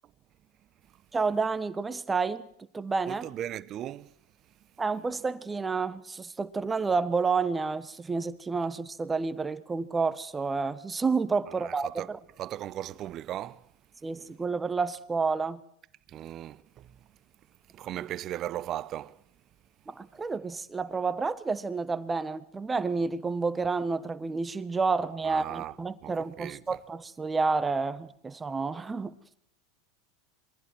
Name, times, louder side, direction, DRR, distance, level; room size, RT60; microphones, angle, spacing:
voice 1, 1.1-2.4 2.7-3.3 4.8-12.2 14.0-15.6 18.0-18.1 19.9-29.1, right 4 dB, 15° right, 1.4 m, -30 dB
voice 2, 3.1-4.1 11.5-12.1 12.4-13.7 16.1-17.0 17.7-19.2 25.2-25.8 26.0-26.8, right 12 dB, 40° right, 0.9 m, -37 dB
27.5 x 22.5 x 4.7 m
hypercardioid pair, 90°, 0 cm